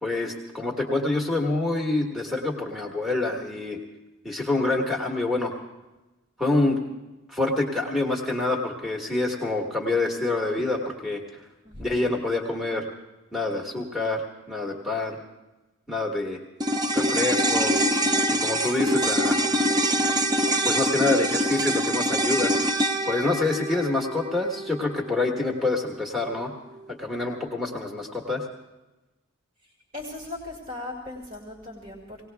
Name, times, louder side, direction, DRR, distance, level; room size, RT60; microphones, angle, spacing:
voice 1, 0.0-3.8 4.2-5.5 6.4-6.8 7.3-11.2 11.8-12.9 13.3-15.2 15.9-16.4 16.9-17.9 18.3-19.5 20.6-22.5 23.0-26.5 26.9-28.4, left 2 dB, ahead, -2 dB, 1.5 m, -26 dB
voice 2, 11.6-12.0 19.0-19.3 29.9-32.2, left 2 dB, 40° right, -2 dB, 2.4 m, -38 dB
sound 1, 16.6-25.1 25.4-25.5, right 1 dB, 20° right, 0.6 m, -24 dB
19.0 x 18.5 x 3.4 m, 1.1 s
head